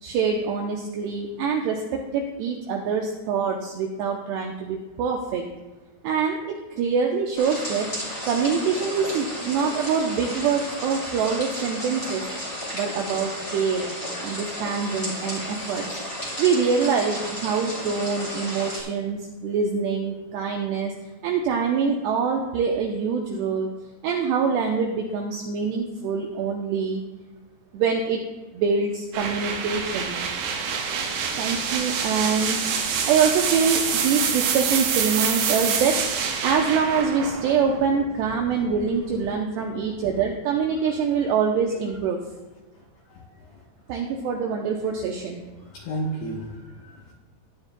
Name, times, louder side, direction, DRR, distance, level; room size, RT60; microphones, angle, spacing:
voice 1, 0.0-5.5 6.0-7.9 8.3-12.2 12.7-13.9 14.2-16.0 16.4-20.9 21.2-23.7 24.0-27.0 27.7-28.2 28.5-30.2 31.4-32.6 33.0-36.0 36.4-42.2 43.9-45.4, right 6 dB, 90° right, 1 dB, 2.3 m, -25 dB
sound 1, 7.4-18.8, equal, 20° left, 1.4 m, -33 dB
sound 2, 29.1-38.9, right 6 dB, 75° right, 3.0 m, -27 dB
voice 2, 43.1-43.6 45.6-47.1, right 1 dB, 70° left, -4 dB, 2.7 m, -34 dB
14.5 x 9.7 x 2.2 m, 1.2 s
omnidirectional pair, 5.7 m